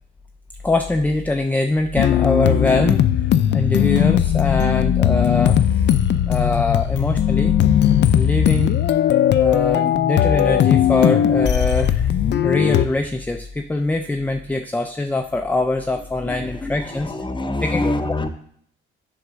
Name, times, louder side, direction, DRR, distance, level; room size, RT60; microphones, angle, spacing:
voice 1, 0.6-3.1 3.5-5.8 6.3-7.5 8.1-8.7 9.3-12.1 12.4-17.1 17.6-17.9, left 2 dB, 10° left, 5 dB, 0.5 m, -23 dB
sound 1, 2.0-12.9, left 10 dB, 65° left, 0.5 m, -18 dB
voice 2, 15.9-18.3, left 2 dB, 25° left, 8 dB, 0.9 m, -27 dB
7.9 x 3.6 x 6.3 m, 0.64 s
cardioid pair, 90°, 20 cm